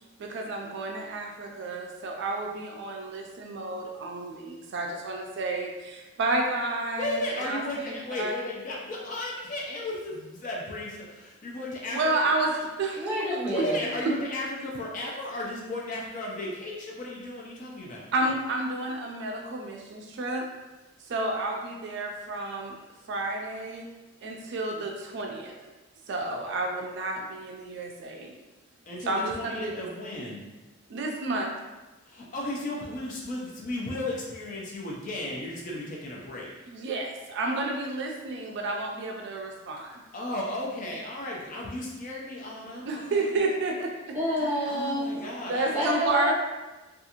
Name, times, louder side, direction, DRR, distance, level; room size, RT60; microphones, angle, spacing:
voice 1, 0.2-8.3 11.9-13.1 13.5-13.6 14.0-14.1 18.1-20.5 21.1-22.7 23.1-23.8 24.2-25.7 26.1-28.3 29.1-29.8 30.9-31.5 36.7-40.0 42.9-44.5 45.4-46.3, right 2 dB, 55° right, 1 dB, 0.3 m, -31 dB
voice 2, 7.0-12.1 13.5-18.1 28.9-30.5 32.1-36.5 40.1-43.3 44.7-45.9, left 1 dB, 40° left, -3 dB, 0.5 m, -35 dB
voice 3, 12.9-13.8 44.1-45.2 45.7-46.3, equal, 10° right, -9 dB, 0.8 m, -28 dB
2.5 x 2.3 x 2.8 m, 1.1 s
head